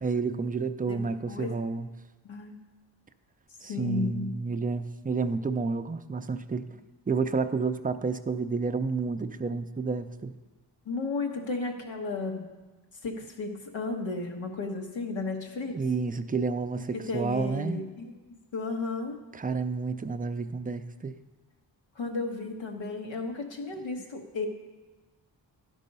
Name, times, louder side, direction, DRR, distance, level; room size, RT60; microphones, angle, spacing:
voice 1, 0.0-1.9 3.6-6.7 7.1-10.3 15.7-17.8 19.3-21.1, right 4 dB, 20° right, 9 dB, 0.4 m, -30 dB
voice 2, 0.9-1.5 2.2-2.5 3.7-4.4 10.8-12.5 13.0-15.8 16.9-19.2 21.9-24.5, left 3 dB, 85° left, 3 dB, 1.2 m, -34 dB
11.5 x 5.5 x 5.4 m, 1.2 s
cardioid pair, 85°, 44 cm